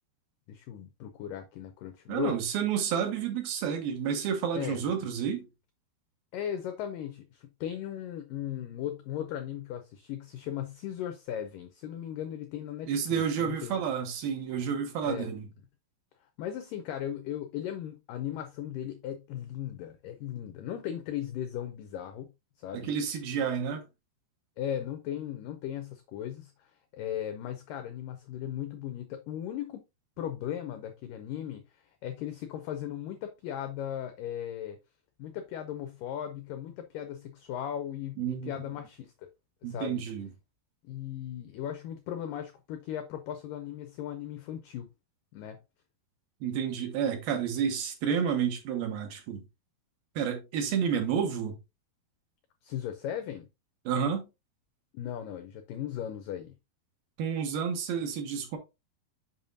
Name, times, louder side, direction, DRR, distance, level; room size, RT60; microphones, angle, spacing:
voice 1, 0.5-2.4 4.5-4.8 6.3-13.8 15.0-15.3 16.4-22.3 22.6-22.9 24.6-29.8 30.2-31.6 32.0-34.8 35.2-39.3 39.6-40.0 40.8-44.9 45.3-45.6 52.6-53.5 54.9-56.5, left 10 dB, 85° left, 1.9 m, -37 dB
voice 2, 2.1-5.5 12.9-15.5 22.7-23.8 38.2-38.5 39.6-40.3 46.4-49.4 50.2-51.6 53.9-54.3 57.2-58.6, right 7 dB, 70° right, 2.8 m, -30 dB
7.0 x 5.7 x 2.6 m
omnidirectional pair, 4.7 m